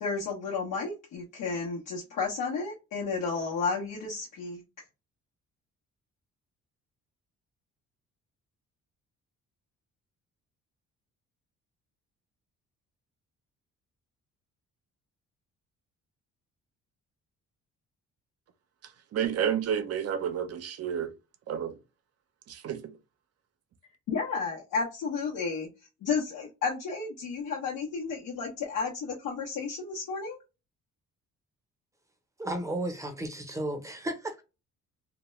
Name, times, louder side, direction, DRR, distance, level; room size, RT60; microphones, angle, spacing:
voice 1, 0.0-4.6 24.1-25.7 26.0-30.4, left 5 dB, 80° left, 0.8 m, -32 dB
voice 2, 18.8-21.1 21.5-21.8 22.5-23.0, right 8 dB, 55° right, 0.5 m, -31 dB
voice 3, 32.4-34.4, right 1 dB, 10° right, 0.6 m, -33 dB
2.2 x 2.2 x 3.0 m
cardioid pair, 90°, 30 cm